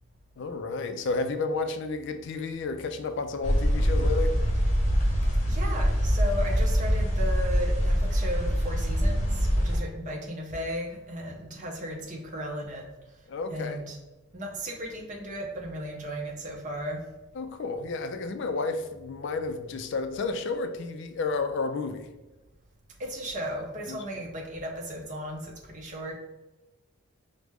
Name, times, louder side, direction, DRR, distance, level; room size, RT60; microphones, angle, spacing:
voice 1, 0.4-4.4 13.3-13.8 17.4-22.1 23.9-24.0, left 3 dB, 55° left, 8 dB, 0.3 m, -31 dB
sound 1, 3.4-9.8, equal, 30° left, 0.9 m, -24 dB
voice 2, 5.4-12.9 13.5-14.0 14.3-17.0 23.0-26.1, equal, 35° right, -1 dB, 0.7 m, -35 dB
4.8 x 2.1 x 3.4 m, 1.1 s
head